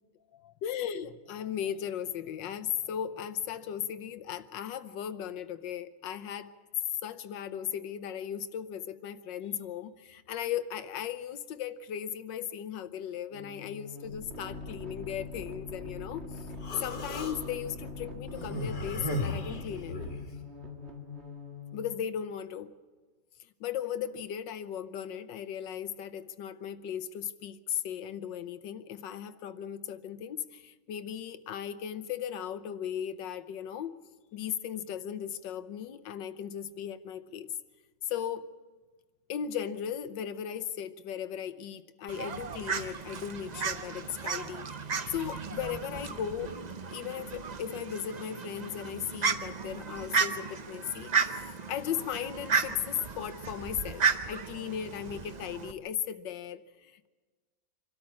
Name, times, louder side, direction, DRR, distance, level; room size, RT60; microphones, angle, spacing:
voice 1, 0.3-6.5 7.0-16.4 16.8-20.0 21.7-22.7 23.6-33.9 34.3-37.5 38.0-38.5 39.3-44.7 45.1-46.6 46.9-51.1 51.7-57.1, left 9 dB, 85° left, 12 dB, 1.5 m, -37 dB
sound 1, 13.3-21.9, left 3 dB, 35° right, 2.2 m, -43 dB
Human voice, 16.6-17.4 18.3-20.3, left 1 dB, 70° left, 2.9 m, -35 dB
Fowl, 42.1-55.7, right 5 dB, 80° right, 0.3 m, -34 dB
25.5 x 13.0 x 8.5 m, 1.3 s
omnidirectional pair, 1.9 m